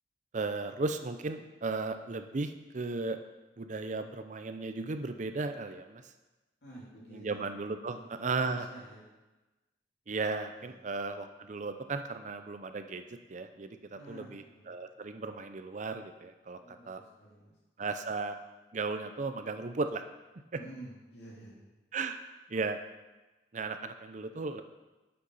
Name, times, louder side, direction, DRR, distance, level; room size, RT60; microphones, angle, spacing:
voice 1, 0.3-3.2 3.6-6.0 7.1-8.7 10.1-17.0 17.8-18.4 18.7-20.0 21.9-22.2 22.5-22.8 23.5-24.6, right 3 dB, 45° right, 8 dB, 0.5 m, -35 dB
voice 2, 6.6-7.5 7.9-8.0 8.4-9.1 10.5-10.8 13.9-14.9 16.6-17.5 20.5-21.6, right 1 dB, 70° left, -5 dB, 3.3 m, -50 dB
7.8 x 6.6 x 5.5 m, 1.1 s
head